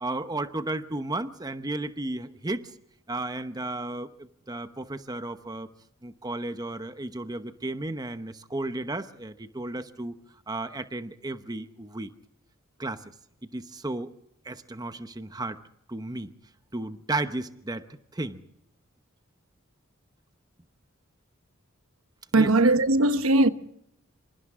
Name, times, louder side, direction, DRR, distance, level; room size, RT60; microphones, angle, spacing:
voice 1, 0.0-2.7 3.1-5.7 6.0-10.2 10.5-12.1 12.8-13.0 13.5-14.1 14.4-15.6 15.9-16.3 16.7-17.9 18.1-18.4 22.3-22.5, right 2 dB, 20° right, 0.9 m, -33 dB
voice 2, 22.3-23.5, right 2 dB, 80° right, 1.1 m, -19 dB
27.5 x 26.0 x 3.7 m
head